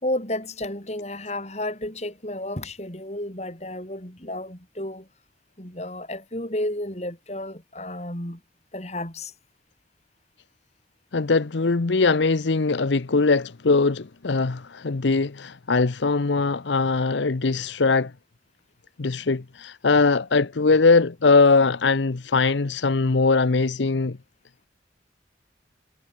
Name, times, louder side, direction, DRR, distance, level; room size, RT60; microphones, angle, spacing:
voice 1, 0.0-5.1 5.6-8.4 8.7-9.3, left 1 dB, 35° left, 4.1 m, -32 dB
voice 2, 11.1-18.1 19.0-24.2, left 4 dB, 80° left, 0.8 m, -21 dB
head